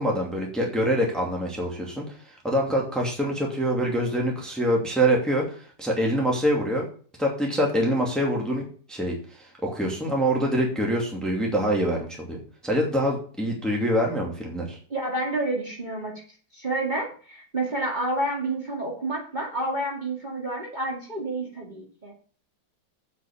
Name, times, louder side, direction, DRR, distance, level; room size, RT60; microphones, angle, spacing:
voice 1, 0.0-2.0 2.4-5.4 5.8-6.8 7.2-12.4 12.6-14.8, right 1 dB, ahead, -1 dB, 2.4 m, -25 dB
voice 2, 14.9-16.1 16.5-22.1, right 2 dB, 25° right, -2 dB, 2.5 m, -29 dB
8.1 x 6.0 x 7.2 m, 0.43 s
omnidirectional pair, 2.1 m